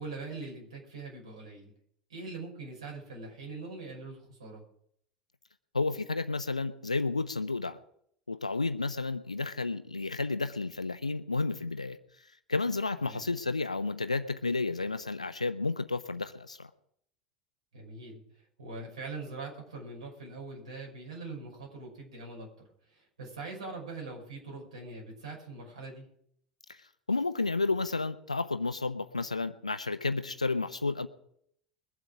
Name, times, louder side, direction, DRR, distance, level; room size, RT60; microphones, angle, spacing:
voice 1, 0.0-1.7 2.1-4.6 13.0-13.2 17.7-18.2 18.6-22.5 22.9-26.1, right 3 dB, 75° right, -2 dB, 5.8 m, -42 dB
voice 2, 5.7-7.8 8.3-12.0 12.5-16.7 27.1-31.1, left 3 dB, 85° left, 11 dB, 0.9 m, -31 dB
22.5 x 7.8 x 5.0 m, 0.68 s
figure-of-eight pair, 75°, 4 cm